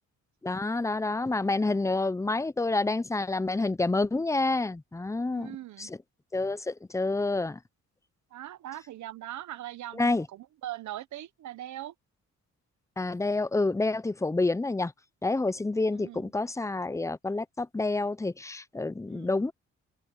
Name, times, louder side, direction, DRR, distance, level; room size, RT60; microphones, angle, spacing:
voice 1, 0.4-6.0 6.3-7.6 10.0-10.3 13.0-14.9 15.2-19.5, left 2 dB, 10° left, 0.7 m, -28 dB
voice 2, 5.3-5.9 8.3-11.9 15.9-16.3 19.1-19.3, right 13 dB, 70° right, 1.0 m, -41 dB
cardioid pair, 90°, 30 cm